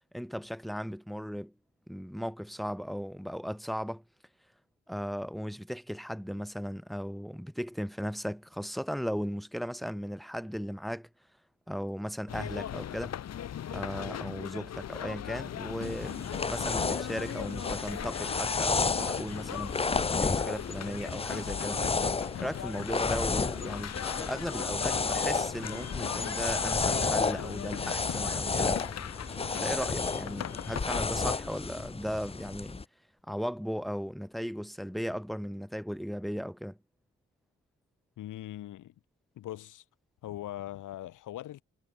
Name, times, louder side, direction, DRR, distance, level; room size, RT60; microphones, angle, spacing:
voice 1, 0.1-1.5 1.9-4.0 4.9-11.1 11.7-13.1 13.7-19.8 20.2-21.8 22.4-28.9 29.5-32.8 33.3-36.8, equal, ahead, 2.1 m, -36 dB
sound 1, 12.3-31.0, left 10 dB, 60° left, 0.8 m, -39 dB
sound 2, 15.8-32.8, left 4 dB, 20° left, 0.5 m, -32 dB
voice 2, 38.2-38.9 39.4-39.8 40.2-41.6, left 13 dB, 90° left, 3.7 m, -41 dB
supercardioid pair, 40°, 30 cm